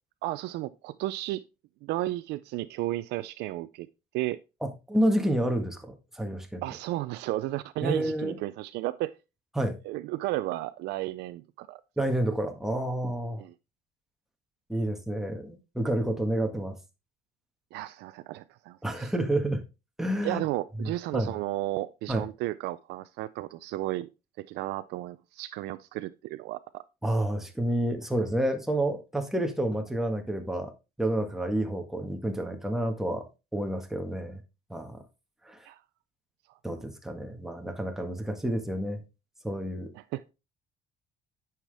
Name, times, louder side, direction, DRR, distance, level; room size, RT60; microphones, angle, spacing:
voice 1, 0.2-1.4 1.8-3.9 4.1-4.4 6.6-9.1 9.8-11.8 13.4-13.5 17.7-19.1 20.2-24.1 24.4-26.8 35.6-35.8 40.0-40.2, right 16 dB, 90° right, 0.4 m, -33 dB
voice 2, 4.6-6.6 7.8-8.4 9.5-9.8 12.0-13.4 14.7-16.8 18.8-19.6 20.0-20.4 20.8-21.3 22.1-22.2 27.0-30.7 31.0-33.3 33.5-34.4 34.7-35.0 35.4-35.6 36.6-39.0 39.4-39.9, right 1 dB, ahead, 1.7 m, -29 dB
9.1 x 5.9 x 3.4 m
cardioid pair, 110°, 17 cm